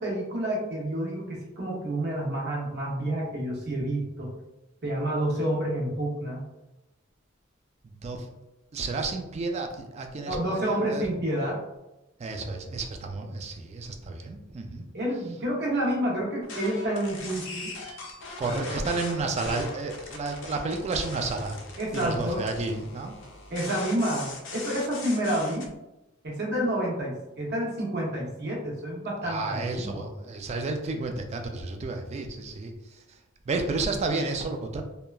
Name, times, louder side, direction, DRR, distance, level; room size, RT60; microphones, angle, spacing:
voice 1, 0.0-4.3 4.8-6.4 10.3-11.6 14.9-17.7 18.4-18.6 21.8-22.4 23.5-25.7 26.2-30.0, right 1 dB, 55° right, -2 dB, 0.8 m, -29 dB
voice 2, 8.7-11.0 12.2-14.8 18.4-21.6 21.9-23.1 29.2-33.2 33.5-34.8, right 3 dB, 30° right, 4 dB, 0.3 m, -31 dB
sound 1, 16.4-25.7, left 3 dB, 60° left, 0.5 m, -41 dB
2.9 x 2.2 x 2.3 m, 0.96 s
head